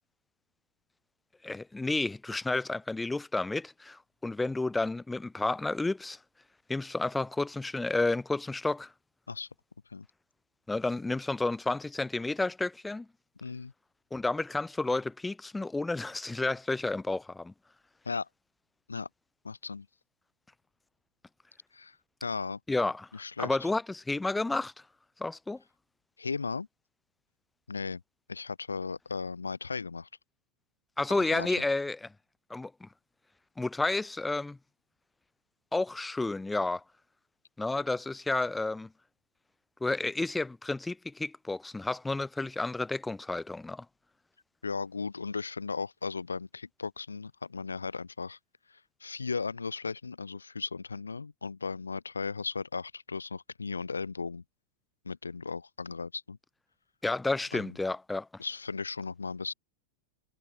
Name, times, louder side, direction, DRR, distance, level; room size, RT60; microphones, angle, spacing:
voice 1, 1.4-6.2 6.7-8.9 10.7-13.1 14.1-17.5 22.7-23.1 23.4-24.7 25.2-25.6 31.0-32.1 32.5-32.9 33.6-34.6 35.7-36.8 37.6-38.9 39.8-43.9 57.0-58.3, left 2 dB, 10° left, 0.8 m, -31 dB
voice 2, 13.4-13.7 18.1-18.3 18.9-19.1 19.4-19.9 21.7-22.0 22.2-22.6 23.1-23.7 26.2-26.7 27.7-28.0 28.3-30.1 31.3-31.5 44.6-48.4 48.7-54.4 55.1-56.4 57.5-57.8 58.4-59.5, left 4 dB, 75° left, 1.8 m, -36 dB
figure-of-eight pair, 90°, 0 cm